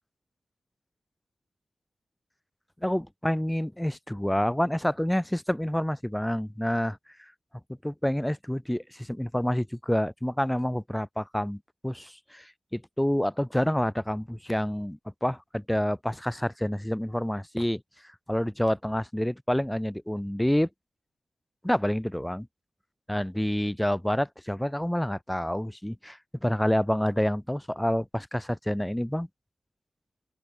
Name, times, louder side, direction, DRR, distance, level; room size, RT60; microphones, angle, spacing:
voice 1, 2.8-7.0 7.8-17.8 18.3-20.7 21.6-22.5 23.1-29.3, equal, 5° left, 3.9 m, -28 dB
open air
wide cardioid pair, 105°, 0 cm